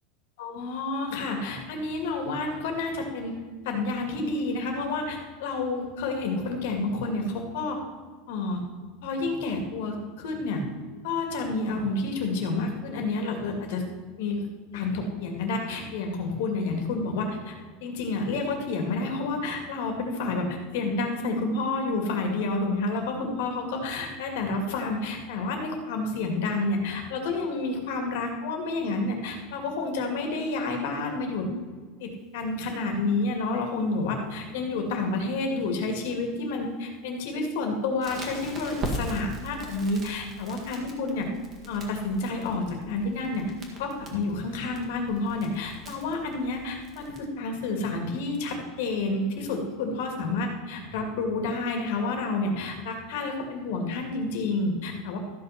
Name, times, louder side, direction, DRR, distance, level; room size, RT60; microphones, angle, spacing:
voice 1, 0.4-3.4 3.6-7.8 8.3-8.6 9.0-10.6 11.0-13.9 14.2-14.5 14.7-17.6 17.8-31.5 32.0-41.3 41.7-55.2, left 3 dB, 70° left, 3 dB, 2.3 m, -29 dB
Crackle, 38.0-47.2, right 1 dB, 25° right, 1.9 m, -40 dB
13.5 x 6.2 x 5.9 m, 1.5 s
supercardioid pair, 160°, 0 cm